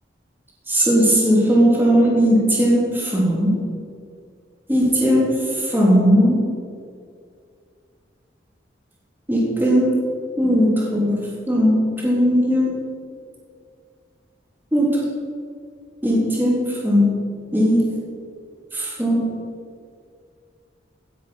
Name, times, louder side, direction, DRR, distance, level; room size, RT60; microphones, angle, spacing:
voice 1, 0.7-3.5 4.7-5.3 5.7-6.4 9.3-9.9 10.4-11.2 11.5-11.7 12.0-12.7 14.7-14.9 16.0-16.6 16.8-17.1 17.5-17.8 18.8-19.3, equal, 10° right, -5 dB, 3.4 m, -17 dB
16.5 x 8.4 x 5.8 m, 2.2 s
head